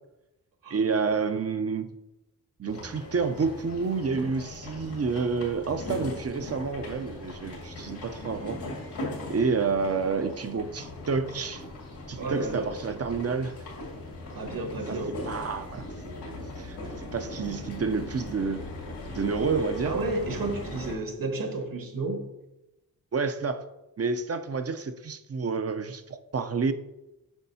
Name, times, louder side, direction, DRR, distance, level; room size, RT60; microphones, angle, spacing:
voice 1, 0.7-1.9 2.6-8.6 9.3-11.6 12.1-13.5 14.9-15.0 15.2-18.6 19.1-19.9 23.1-23.7 24.0-26.7, right 5 dB, 40° right, 9 dB, 0.6 m, -29 dB
sound 1, 2.7-20.9, left 1 dB, 85° left, 2.1 m, -39 dB
voice 2, 12.1-12.7 14.3-15.2 19.8-22.3, right 2 dB, 60° right, 5 dB, 1.4 m, -32 dB
8.0 x 5.3 x 2.8 m, 0.96 s
cardioid pair, 50°, 39 cm